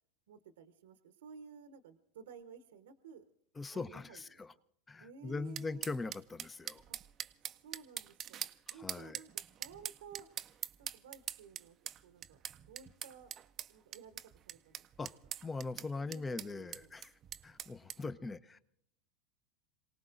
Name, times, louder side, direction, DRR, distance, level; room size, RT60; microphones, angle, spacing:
voice 1, 0.3-3.2 3.7-4.4 5.0-5.8 6.9-7.0 7.4-10.3 10.8-11.8 12.0-12.4 12.7-13.4 13.7-14.8 16.0-17.0, right 6 dB, 80° right, 1.0 m, -54 dB
voice 2, 3.6-4.5 4.9-6.8 8.7-9.2 15.0-15.1 15.4-17.1 17.4-18.6, left 3 dB, 20° left, 0.7 m, -41 dB
sound 1, 5.6-18.0, right 10 dB, 40° right, 0.6 m, -44 dB
27.5 x 18.5 x 2.5 m
hypercardioid pair, 95°, 0 cm